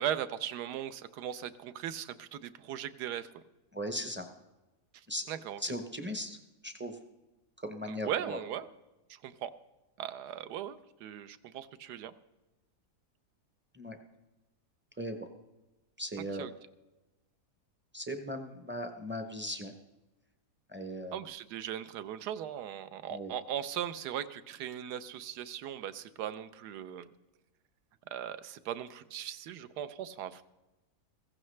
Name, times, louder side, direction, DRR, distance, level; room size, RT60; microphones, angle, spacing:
voice 1, 0.0-3.4 4.9-5.6 7.8-8.7 9.1-9.5 10.0-12.1 16.4-16.5 21.1-27.1 28.1-30.4, right 10 dB, 85° right, 12 dB, 1.2 m, -38 dB
voice 2, 3.7-4.3 5.1-5.3 5.6-6.4 6.6-7.0 7.6-8.4 13.7-14.0 15.0-15.3 16.0-16.5 17.9-19.7 20.7-21.2 23.1-23.3, equal, 15° right, 5 dB, 0.4 m, -38 dB
15.0 x 15.0 x 3.2 m, 1.1 s
omnidirectional pair, 1.7 m